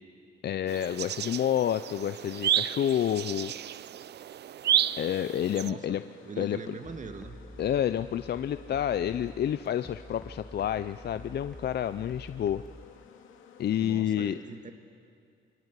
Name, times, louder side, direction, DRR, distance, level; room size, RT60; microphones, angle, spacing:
voice 1, 0.4-3.5 5.0-6.0 6.4-6.7 7.6-12.6 13.6-14.4, left 10 dB, 55° left, 12 dB, 0.6 m, -29 dB
sound 1, 0.7-5.7, right 10 dB, 60° right, 0.6 m, -31 dB
sound 2, 4.8-14.0, left 8 dB, 85° left, 2.4 m, -54 dB
voice 2, 5.6-7.4 13.8-14.7, right 4 dB, 40° right, 6 dB, 1.9 m, -42 dB
sound 3, 6.8-12.9, equal, 5° left, 1.7 m, -48 dB
27.5 x 24.0 x 8.3 m, 2.3 s
cardioid pair, 90°, 20 cm